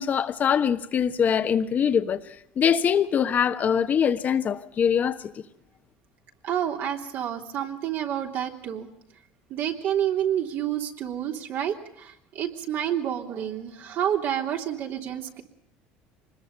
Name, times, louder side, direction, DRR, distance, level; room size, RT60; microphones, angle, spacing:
voice 1, 0.0-2.2 2.6-5.2, left 7 dB, 40° left, 1.2 m, -23 dB
voice 2, 6.4-8.9 9.5-15.4, right 10 dB, 60° right, 3.2 m, -29 dB
24.5 x 21.0 x 5.6 m
supercardioid pair, 100°, 4 cm